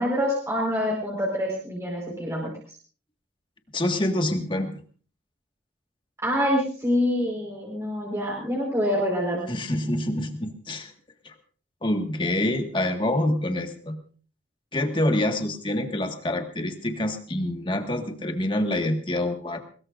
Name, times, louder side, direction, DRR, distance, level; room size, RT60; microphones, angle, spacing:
voice 1, 0.0-2.8 6.2-9.5, equal, 15° right, -3 dB, 4.6 m, -26 dB
voice 2, 3.7-4.7 9.5-10.9 11.2-11.3 11.8-14.0 14.7-19.6, left 1 dB, 25° left, 5 dB, 1.7 m, -26 dB
22.0 x 21.0 x 2.6 m, 0.41 s
head